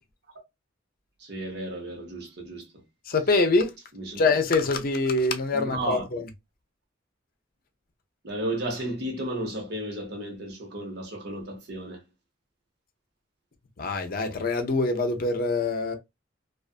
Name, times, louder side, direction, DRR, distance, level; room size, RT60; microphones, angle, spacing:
voice 1, 1.2-2.6 3.9-4.2 5.5-6.1 8.2-12.0, right 1 dB, 60° right, 1.0 m, -33 dB
voice 2, 3.1-3.7 4.2-6.3 13.8-16.0, left 3 dB, 50° left, 0.6 m, -24 dB
2.4 x 2.4 x 2.4 m
head